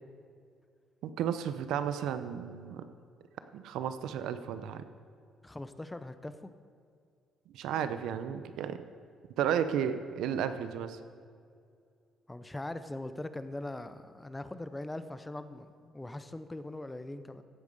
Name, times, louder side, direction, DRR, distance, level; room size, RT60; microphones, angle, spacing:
voice 1, 1.0-2.9 3.5-4.8 7.5-8.8 9.4-11.0, right 9 dB, 85° right, 11 dB, 0.7 m, -33 dB
voice 2, 5.4-6.5 12.3-17.4, left 2 dB, 10° left, 11 dB, 0.6 m, -41 dB
15.5 x 8.2 x 5.4 m, 2.3 s
cardioid pair, 135°, 0 cm